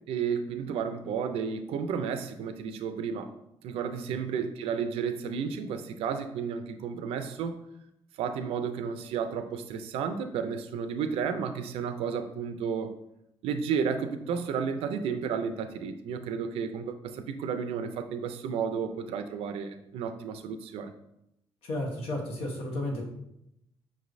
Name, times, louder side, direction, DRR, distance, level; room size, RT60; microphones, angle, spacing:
voice 1, 0.1-3.3 3.6-7.6 8.2-12.9 13.4-20.9, right 6 dB, 85° right, 8 dB, 0.4 m, -32 dB
voice 2, 21.6-23.1, left 1 dB, 80° left, 0 dB, 1.0 m, -33 dB
5.2 x 3.1 x 2.6 m, 0.81 s
cardioid pair, 100°, 10 cm